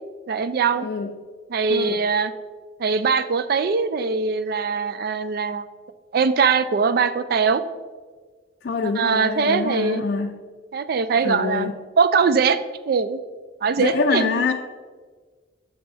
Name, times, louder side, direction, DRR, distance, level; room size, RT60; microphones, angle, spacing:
voice 1, 0.3-0.9 1.5-2.3 2.8-5.6 6.1-7.6 9.0-10.0 10.7-11.7 12.0-12.6 12.9-13.2 13.6-14.4, right 5 dB, 55° right, 12 dB, 0.4 m, -21 dB
voice 2, 0.8-1.1 1.7-2.0 8.6-10.4 11.2-11.7 13.8-14.5, left 4 dB, 55° left, 4 dB, 0.4 m, -25 dB
6.4 x 6.0 x 3.4 m, 1.5 s
head